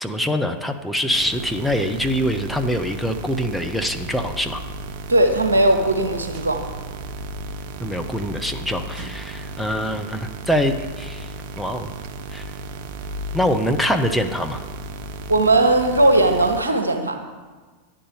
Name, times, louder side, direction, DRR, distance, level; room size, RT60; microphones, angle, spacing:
voice 1, 0.0-4.6 7.8-11.9 12.3-12.5 13.3-14.6, equal, ahead, 4 dB, 0.6 m, -24 dB
sound 1, 1.1-16.6, right 3 dB, 45° right, 0.6 m, -34 dB
voice 2, 5.1-6.6 15.3-17.2, right 2 dB, 75° right, 5 dB, 1.0 m, -18 dB
10.0 x 5.3 x 6.9 m, 1.4 s
figure-of-eight pair, 90°, 0 cm